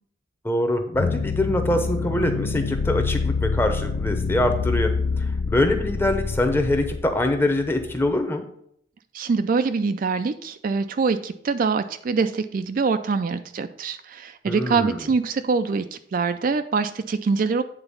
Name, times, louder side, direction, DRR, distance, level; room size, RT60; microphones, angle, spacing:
voice 1, 0.4-8.4 14.5-15.1, left 1 dB, 10° left, 5 dB, 0.8 m, -24 dB
sound 1, 0.9-8.1, left 4 dB, 55° left, 0.4 m, -27 dB
voice 2, 9.1-17.6, right 4 dB, 45° right, 10 dB, 0.3 m, -24 dB
8.9 x 3.9 x 5.4 m, 0.69 s
head